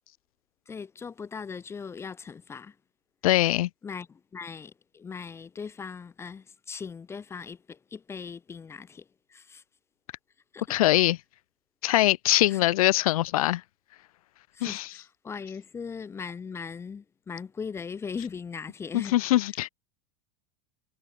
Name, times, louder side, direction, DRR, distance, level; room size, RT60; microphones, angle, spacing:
voice 1, 0.7-2.8 3.8-9.6 10.5-10.6 12.5-12.7 14.5-19.2, left 6 dB, 15° left, 0.7 m, -39 dB
voice 2, 3.2-3.7 10.7-11.2 11.8-13.6 14.6-14.8 18.9-19.7, left 16 dB, 90° left, 0.5 m, -22 dB
supercardioid pair, 140°, 18 cm